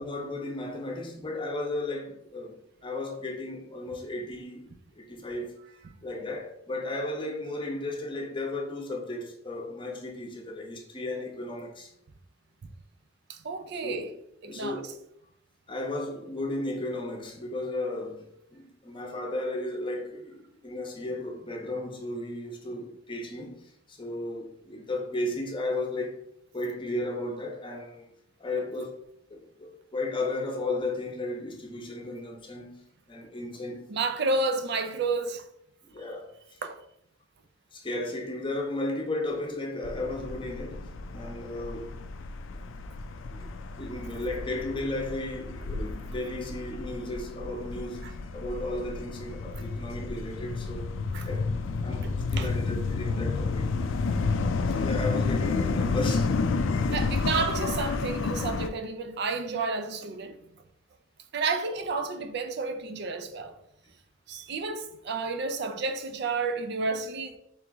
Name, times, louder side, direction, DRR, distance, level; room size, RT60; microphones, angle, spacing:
voice 1, 0.0-2.6 2.8-5.6 6.0-11.9 13.8-14.1 14.4-15.0 15.7-26.2 26.5-28.1 28.4-29.0 29.3-33.9 35.9-36.3 37.7-42.0 43.2-43.5 43.8-50.9 51.2-51.5 51.8-53.7 54.7-56.3 56.6-57.2, left 2 dB, 25° left, 0.8 m, -34 dB
voice 2, 13.3-14.1 14.4-14.8 33.9-35.4 36.6-36.8 51.1-51.3 52.4-52.5 56.9-60.4 61.3-63.5 64.3-67.4, right 4 dB, 60° right, 0.5 m, -31 dB
sound 1, 39.8-58.7, left 4 dB, 85° left, 0.4 m, -31 dB
3.9 x 3.0 x 3.5 m
head